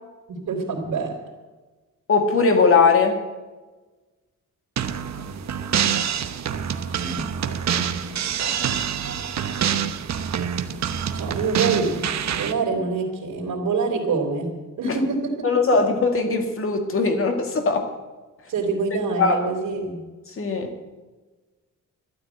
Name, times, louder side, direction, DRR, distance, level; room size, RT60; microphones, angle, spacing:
voice 1, 0.3-1.1 6.9-7.3 11.1-15.3 18.5-20.0, right 4 dB, 80° right, -4 dB, 3.5 m, -26 dB
voice 2, 2.1-3.2 14.8-15.0 15.4-17.9 19.2-19.5 20.4-20.7, left 4 dB, 45° left, 5 dB, 2.1 m, -20 dB
sound 1, 4.8-12.5, right 8 dB, 55° right, 1.0 m, -26 dB
13.5 x 12.5 x 8.1 m, 1.3 s
wide cardioid pair, 175°, 32 cm